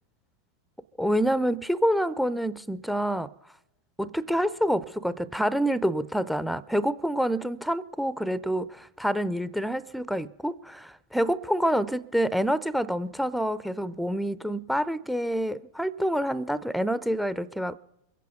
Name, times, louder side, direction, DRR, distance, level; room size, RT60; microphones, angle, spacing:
voice 1, 1.0-3.3 4.0-17.8, equal, ahead, 0.4 m, -27 dB
22.0 x 8.3 x 6.9 m
figure-of-eight pair, 90°, 0 cm